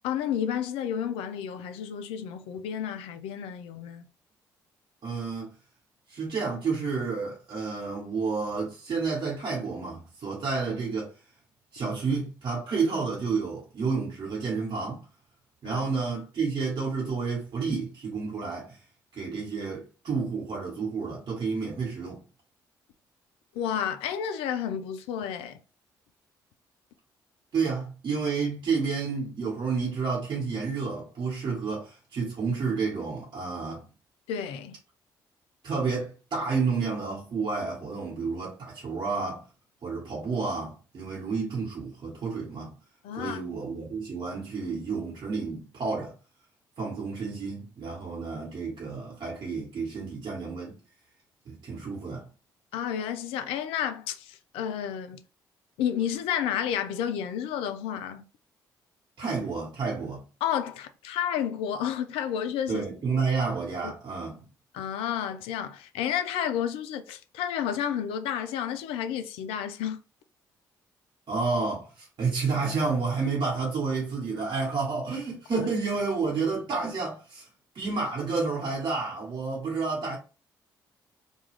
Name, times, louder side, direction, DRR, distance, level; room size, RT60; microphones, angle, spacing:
voice 1, 0.0-4.1 15.6-15.8 23.6-25.6 34.3-34.8 43.0-43.4 52.7-55.2 55.8-58.2 60.4-62.9 63.8-63.9 64.7-70.0 75.5-75.7, left 9 dB, 70° left, 0.4 m, -31 dB
voice 2, 5.0-5.5 6.1-11.1 11.7-15.0 15.6-18.8 19.1-22.2 27.5-33.9 35.6-39.4 39.8-42.7 43.2-46.1 46.8-50.8 51.4-52.3 59.2-60.2 62.7-64.4 71.3-77.5 77.7-80.2, right 4 dB, 50° right, 1.2 m, -30 dB
2.3 x 2.3 x 3.2 m
hypercardioid pair, 45°, 10 cm